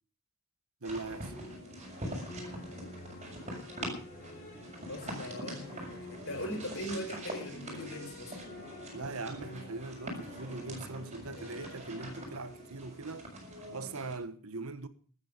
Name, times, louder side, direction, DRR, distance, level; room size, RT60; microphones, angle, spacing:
sound 1, 0.8-12.9, left 2 dB, 40° left, 3.6 m, -51 dB
sound 2, 0.8-14.2, right 1 dB, 30° right, 7.0 m, -43 dB
voice 1, 0.8-1.3 8.9-13.3 13.7-14.9, right 3 dB, 70° right, 1.3 m, -41 dB
voice 2, 4.9-8.3, left 1 dB, 60° left, 5.2 m, -40 dB
14.0 x 13.0 x 6.7 m
head